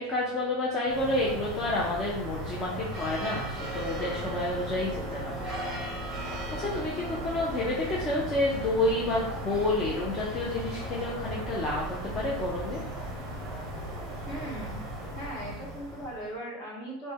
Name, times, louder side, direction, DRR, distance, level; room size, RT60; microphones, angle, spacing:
voice 1, 0.0-5.5 6.1-12.8, left 2 dB, 20° left, -4 dB, 0.5 m, -30 dB
sound 1, 0.8-16.3, right 1 dB, 15° right, 0.8 m, -36 dB
voice 2, 14.3-14.8 15.1-17.1, right 1 dB, 45° left, -5 dB, 1.4 m, -38 dB
4.2 x 2.1 x 3.4 m, 0.85 s
supercardioid pair, 165°, 0 cm